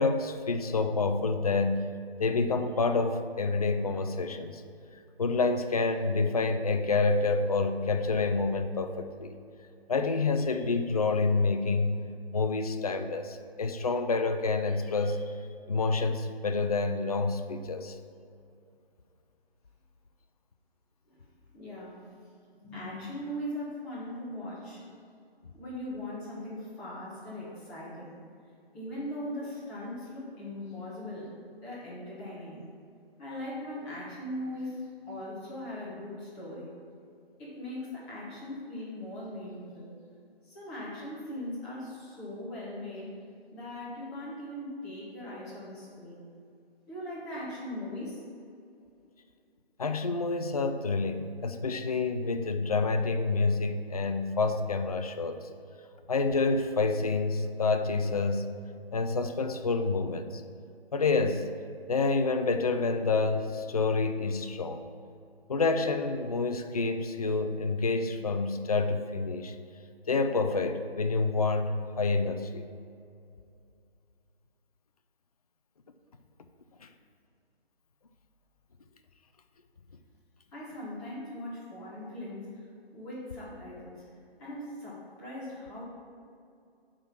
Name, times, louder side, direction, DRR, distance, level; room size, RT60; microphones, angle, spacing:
voice 1, 0.0-1.8 2.2-4.6 5.2-9.4 9.9-12.0 12.3-15.3 15.7-18.0 49.8-55.5 56.1-58.5 58.9-60.4 60.9-61.5 61.9-64.8 65.5-69.5 70.1-72.7 76.8-76.9, left 3 dB, 40° left, 8 dB, 0.4 m, -28 dB
voice 2, 21.5-22.0 22.6-24.8 25.5-28.2 28.7-31.3 31.6-32.6 33.2-36.7 37.4-39.9 40.4-43.1 43.5-46.2 46.9-48.2 80.5-82.6 82.9-84.0 84.4-85.8, left 1 dB, 15° left, -9 dB, 1.6 m, -39 dB
9.7 x 3.8 x 5.9 m, 2.5 s
figure-of-eight pair, 150°, 31 cm